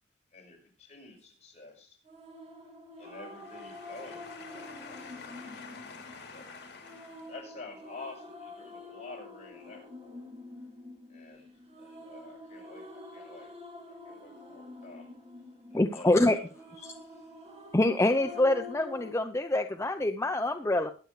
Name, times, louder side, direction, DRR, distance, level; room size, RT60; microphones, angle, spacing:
voice 1, 0.3-2.0 3.0-5.1 6.3-6.5 7.3-10.2 11.1-13.6 13.8-15.1 15.7-16.4 16.7-17.5, left 3 dB, 40° left, 6.1 m, -49 dB
sound 1, 2.0-19.1, left 2 dB, 35° right, 2.4 m, -47 dB
voice 2, 3.4-7.3, left 4 dB, 65° left, 3.2 m, -48 dB
voice 3, 15.7-16.4 17.7-20.9, left 1 dB, 15° left, 0.6 m, -25 dB
22.0 x 8.1 x 3.3 m
head